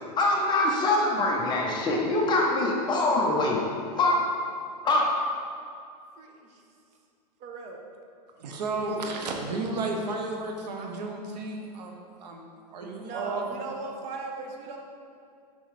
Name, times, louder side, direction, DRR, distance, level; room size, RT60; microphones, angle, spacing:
voice 1, 0.2-3.6 4.0-4.2 4.8-5.1, left 2 dB, 20° left, -1 dB, 0.8 m, -24 dB
voice 2, 6.2-6.6 7.4-7.8 9.1-9.8 10.8-10.9 12.9-14.8, right 3 dB, 30° right, 1 dB, 0.8 m, -39 dB
voice 3, 8.4-13.5, right 3 dB, 80° right, 2 dB, 1.0 m, -33 dB
7.2 x 5.4 x 3.2 m, 2.4 s
supercardioid pair, 145°, 21 cm